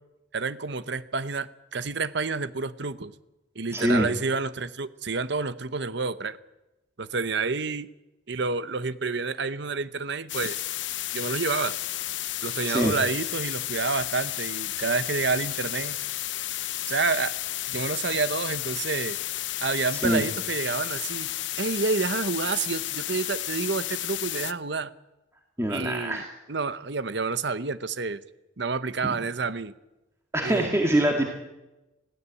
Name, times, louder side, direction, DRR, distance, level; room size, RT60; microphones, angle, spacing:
voice 1, 0.3-3.1 3.5-6.4 7.0-7.9 8.3-10.6 11.1-11.7 12.4-16.0 16.9-17.3 17.7-19.2 19.6-21.3 21.6-24.9 25.7-26.2 26.5-28.2 28.6-29.7 30.4-30.7, right 4 dB, 65° right, 14 dB, 1.0 m, -29 dB
voice 2, 3.7-4.1 12.7-12.9 20.0-20.2 25.6-26.3 30.3-31.3, right 1 dB, 15° right, 1 dB, 2.1 m, -24 dB
sound 1, 10.3-24.5, left 14 dB, 70° left, 0.8 m, -32 dB
21.0 x 16.0 x 8.5 m, 0.99 s
head